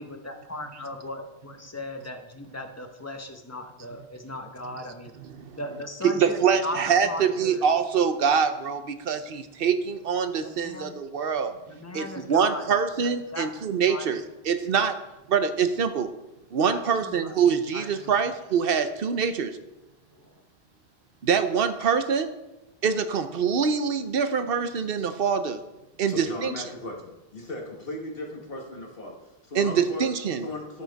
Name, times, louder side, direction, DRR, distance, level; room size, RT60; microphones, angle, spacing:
voice 1, 0.0-5.1 5.5-7.7 10.4-10.9 11.6-13.5 13.9-14.2 16.7-18.3 20.1-20.4, left 1 dB, 15° left, 5 dB, 0.9 m, -38 dB
voice 2, 6.2-11.5 11.9-14.2 14.5-14.9 15.3-16.1 16.5-19.5 21.2-22.3 22.8-25.6 26.0-26.5 29.5-30.4, right 6 dB, 65° right, 9 dB, 0.9 m, -24 dB
voice 3, 26.1-30.1 30.4-30.8, left 1 dB, 65° left, -1 dB, 1.6 m, -37 dB
12.5 x 7.3 x 4.0 m, 0.98 s
omnidirectional pair, 1.1 m